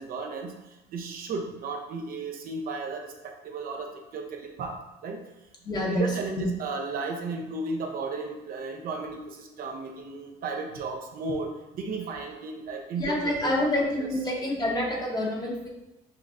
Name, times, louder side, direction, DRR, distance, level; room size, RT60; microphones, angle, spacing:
voice 1, 0.0-5.2 5.8-13.6 14.0-14.1, right 3 dB, 60° right, 2 dB, 0.6 m, -34 dB
voice 2, 5.6-6.1 6.4-6.5 13.0-15.7, left 1 dB, 25° left, -1 dB, 0.9 m, -27 dB
5.9 x 2.4 x 2.5 m, 0.96 s
cardioid pair, 110°, 17 cm